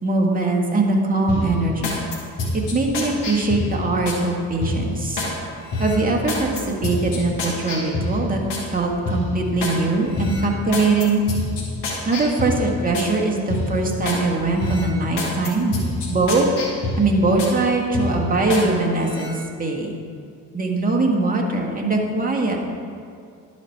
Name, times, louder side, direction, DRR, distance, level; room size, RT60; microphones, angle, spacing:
voice 1, 0.0-1.9 2.5-5.2 5.8-8.4 8.7-11.2 12.0-15.8 16.1-16.4 17.0-19.9 20.5-22.6, right 3 dB, 20° right, 0 dB, 1.5 m, -21 dB
sound 1, 1.3-4.2 4.6-5.3 5.7-8.7 9.1-9.8 10.1-13.1 13.5-14.2 14.6-17.6 17.9-18.7 19.0-19.3, left 2 dB, 70° left, 1.5 m, -27 dB
11.0 x 4.3 x 4.5 m, 2.3 s
supercardioid pair, 55°, 43 cm